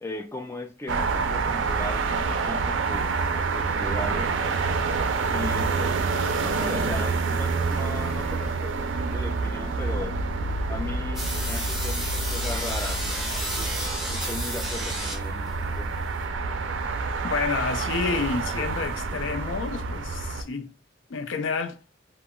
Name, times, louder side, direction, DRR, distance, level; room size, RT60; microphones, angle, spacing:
voice 1, 0.0-4.3 5.3-6.0 6.4-10.1 10.7-13.7 14.1-15.9, left 2 dB, 15° left, 0.4 m, -37 dB
sound 1, 0.9-20.4, right 4 dB, 75° right, 0.4 m, -27 dB
sound 2, 11.1-15.5, right 1 dB, ahead, 1.0 m, -32 dB
voice 2, 17.2-20.7 21.1-21.8, left 5 dB, 80° left, 0.4 m, -29 dB
2.1 x 2.0 x 3.6 m
head